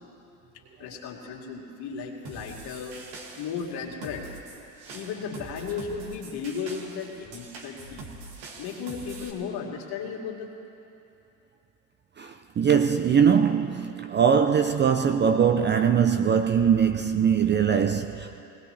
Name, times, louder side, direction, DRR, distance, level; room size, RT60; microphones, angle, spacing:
voice 1, 0.8-3.0 3.4-4.3 4.9-8.1 8.5-10.5, left 6 dB, 55° left, 2.5 m, -35 dB
sound 1, 2.2-9.3, right 3 dB, 65° right, 2.4 m, -44 dB
voice 2, 12.2-18.4, right 7 dB, 25° right, 0.5 m, -22 dB
21.0 x 18.5 x 3.3 m
hypercardioid pair, 80°, 47 cm